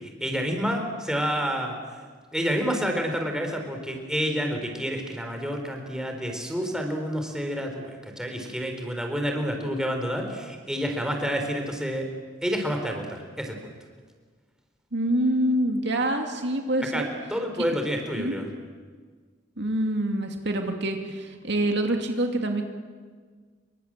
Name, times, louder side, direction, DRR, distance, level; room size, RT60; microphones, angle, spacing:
voice 1, 0.0-1.8 2.3-12.1 12.4-13.7 16.9-17.0 17.3-18.5, equal, 5° right, 3 dB, 4.4 m, -29 dB
voice 2, 14.9-17.1 18.2-18.4 19.6-22.6, right 1 dB, 65° right, 4 dB, 2.8 m, -26 dB
28.0 x 25.0 x 7.7 m, 1.5 s
head